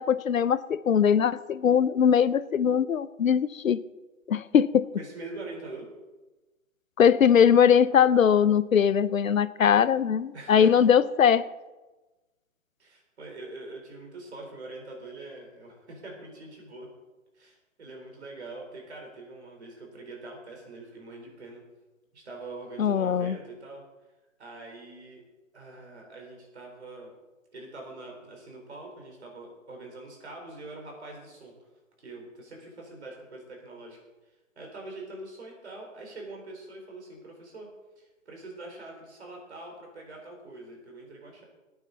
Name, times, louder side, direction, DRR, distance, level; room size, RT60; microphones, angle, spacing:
voice 1, 0.0-3.8 4.3-4.9 7.0-11.5 22.8-23.4, left 8 dB, 90° left, 17 dB, 0.7 m, -21 dB
voice 2, 5.0-5.9 10.3-10.8 12.8-16.9 17.3-21.6 22.1-23.8 24.4-25.2 25.5-27.1 27.5-31.5 32.0-34.0 34.6-37.7 38.0-41.4, right 2 dB, 55° right, 0 dB, 4.2 m, -43 dB
18.5 x 9.1 x 4.1 m, 1.2 s
hypercardioid pair, 170°, 39 cm